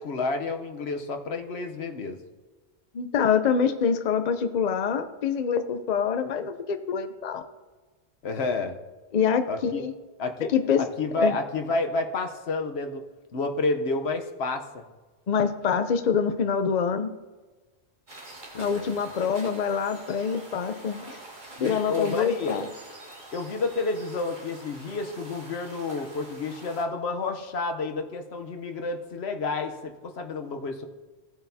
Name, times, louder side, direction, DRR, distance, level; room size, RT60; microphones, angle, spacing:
voice 1, 0.0-2.2 8.2-8.8 9.5-9.8 10.2-10.5 10.8-13.0 13.3-14.8 18.5-18.9 21.6-22.6 23.3-30.9, left 3 dB, 75° left, 5 dB, 1.1 m, -30 dB
voice 2, 2.9-7.4 9.1-9.9 10.5-10.8 11.1-11.4 15.3-17.1 18.5-21.0 21.6-22.7, left 6 dB, 50° left, 9 dB, 0.6 m, -25 dB
sound 1, 18.1-26.8, right 2 dB, 45° right, 1.8 m, -45 dB
17.0 x 8.0 x 2.7 m, 1.3 s
omnidirectional pair, 1.1 m